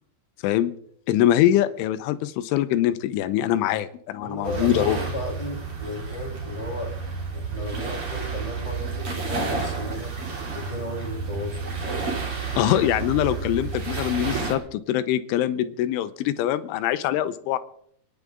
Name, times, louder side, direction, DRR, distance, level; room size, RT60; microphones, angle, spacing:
voice 1, 1.1-5.0 12.6-17.6, left 12 dB, 85° left, 12 dB, 3.3 m, -23 dB
voice 2, 4.2-7.0 7.3-10.1 10.5-12.0, left 1 dB, 10° left, 0 dB, 1.4 m, -34 dB
sound 1, 4.4-14.6, right 4 dB, 35° right, 3.1 m, -31 dB
29.5 x 10.5 x 3.7 m, 0.67 s
omnidirectional pair, 5.5 m